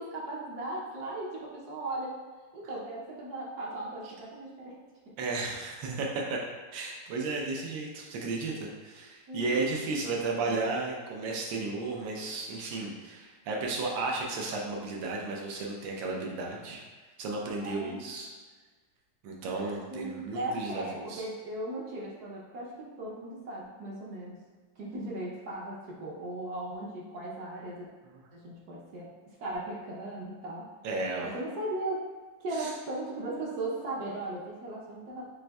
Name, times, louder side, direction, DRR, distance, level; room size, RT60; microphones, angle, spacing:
voice 1, 0.0-2.2 2.5-4.8 5.1-5.2 9.3-9.8 17.6-18.1 19.9-24.4 24.8-27.9 28.3-29.1 29.4-30.7 31.2-32.0 32.4-35.4, right 2 dB, 65° right, -4 dB, 1.2 m, -37 dB
voice 2, 5.2-6.4 6.7-16.8 17.2-18.3 19.2-21.2 30.8-31.3 32.5-32.7, right 3 dB, 85° right, -1 dB, 1.4 m, -33 dB
7.3 x 2.6 x 2.3 m, 1.4 s
omnidirectional pair, 2.0 m